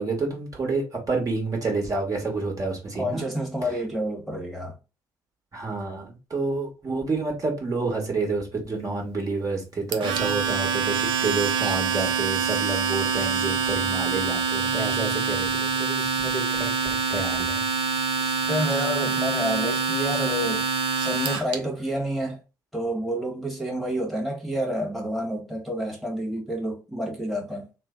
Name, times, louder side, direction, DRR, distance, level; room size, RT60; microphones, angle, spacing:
voice 1, 0.0-3.2 5.5-16.7 17.1-17.6, right 3 dB, 35° right, 1.5 m, -29 dB
voice 2, 3.0-4.8 18.2-20.7 21.0-22.4 22.7-27.7, right 1 dB, ahead, 1.3 m, -29 dB
Domestic sounds home sounds, 9.9-21.5, right 5 dB, 60° right, 0.7 m, -25 dB
3.3 x 2.2 x 3.7 m
hypercardioid pair, 50°, 10 cm